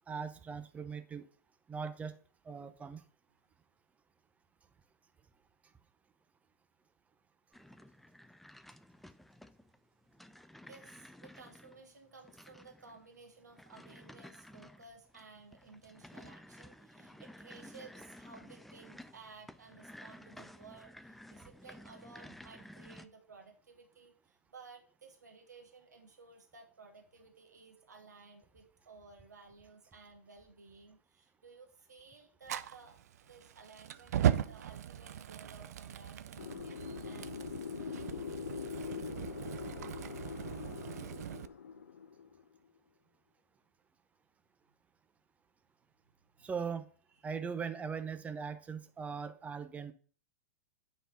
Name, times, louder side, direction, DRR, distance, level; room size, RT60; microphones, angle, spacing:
voice 1, 0.1-1.2 1.7-2.1 2.5-3.0 46.4-46.8 47.2-49.9, right 6 dB, 15° right, 10 dB, 0.8 m, -40 dB
sound 1, 7.5-23.1, left 1 dB, ahead, 0.4 m, -54 dB
voice 2, 10.7-33.0 33.3-38.0 46.4-46.7 47.2-47.3, right 4 dB, 90° right, 3 dB, 1.4 m, -56 dB
Fire, 32.4-41.5, right 10 dB, 70° right, 0.6 m, -38 dB
sound 2, 36.4-42.6, left 7 dB, 85° left, 0.5 m, -43 dB
9.2 x 4.1 x 5.3 m, 0.43 s
hypercardioid pair, 110°, 9 cm